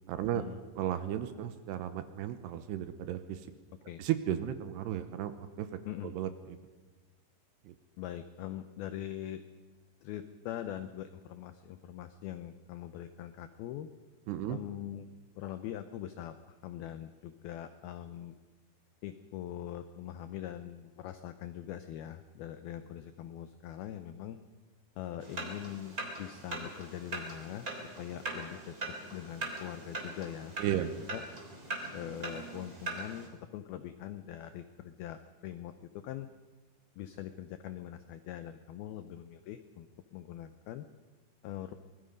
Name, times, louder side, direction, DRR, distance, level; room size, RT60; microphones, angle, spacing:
voice 1, 0.1-0.4 0.8-3.5 4.0-5.7 6.0-6.6 7.7-7.8 14.3-14.6 30.6-30.9, right 11 dB, 75° right, 10 dB, 2.7 m, -34 dB
voice 2, 8.0-9.4 10.0-13.9 14.5-15.1 15.4-18.3 19.0-24.4 25.0-27.7 28.0-28.8 29.1-31.2 31.9-36.3 37.0-40.9 41.4-41.7, left 11 dB, 85° left, 10 dB, 2.1 m, -42 dB
sound 1, 25.2-33.3, right 2 dB, 20° right, 3.1 m, -41 dB
25.0 x 20.0 x 5.3 m, 1.3 s
omnidirectional pair, 5.4 m